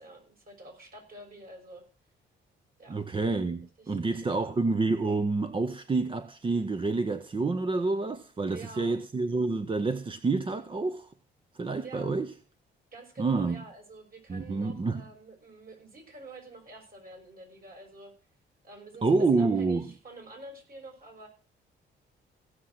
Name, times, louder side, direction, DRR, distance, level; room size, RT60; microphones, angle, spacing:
voice 1, 0.0-1.8 2.8-3.0 3.8-4.0 4.3-4.6 8.5-9.0 11.8-12.1 12.9-18.1 18.6-21.3, right 2 dB, 50° right, 6.0 m, -47 dB
voice 2, 2.9-11.1 11.5-12.3 13.2-13.6 14.3-15.0 19.0-19.9, right 3 dB, 25° right, 0.7 m, -28 dB
16.5 x 6.5 x 5.7 m
cardioid pair, 90°, 20 cm